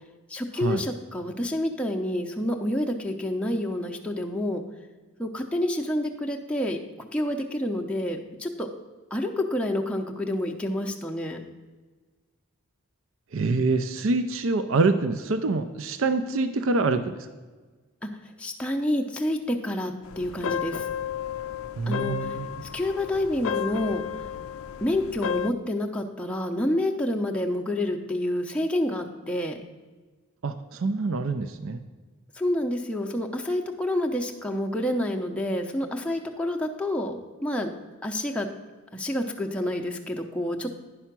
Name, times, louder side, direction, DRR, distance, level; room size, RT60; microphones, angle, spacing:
voice 1, 0.3-4.6 5.2-8.7 9.1-11.4 16.3-16.4 18.0-18.1 18.4-20.8 21.9-22.4 22.7-24.0 24.8-29.6 32.3-37.7 38.0-38.5 38.9-40.8, left 1 dB, 5° left, 1 dB, 0.6 m, -28 dB
voice 2, 13.3-17.3 21.8-22.5 30.4-31.8, right 3 dB, 60° right, 10 dB, 0.5 m, -25 dB
sound 1, 20.0-25.5, left 8 dB, 65° left, 0.4 m, -33 dB
10.0 x 5.6 x 5.9 m, 1.3 s
head